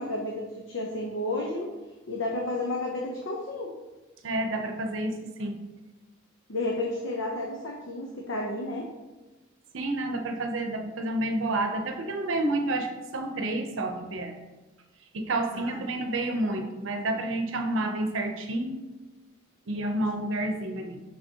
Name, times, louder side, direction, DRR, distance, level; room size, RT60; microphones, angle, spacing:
voice 1, 0.0-1.7 2.1-3.7 6.5-8.9 15.5-15.9, left 2 dB, 70° left, -1 dB, 0.8 m, -32 dB
voice 2, 4.2-5.6 9.7-14.4 15.1-18.8 19.7-21.0, right 1 dB, 75° right, 5 dB, 0.7 m, -29 dB
6.2 x 5.8 x 2.9 m, 1.2 s
head